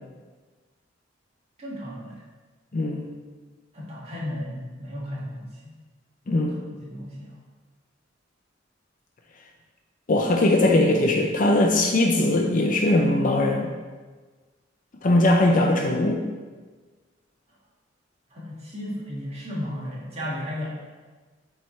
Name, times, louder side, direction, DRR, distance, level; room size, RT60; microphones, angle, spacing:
voice 1, 1.6-2.2 3.7-5.6 6.3-7.4 18.3-20.7, left 1 dB, 35° right, -5 dB, 1.7 m, -34 dB
voice 2, 2.7-3.1 6.3-6.6 10.1-13.7 15.0-16.2, left 1 dB, 45° left, 1 dB, 0.5 m, -20 dB
7.6 x 3.4 x 4.2 m, 1.4 s
head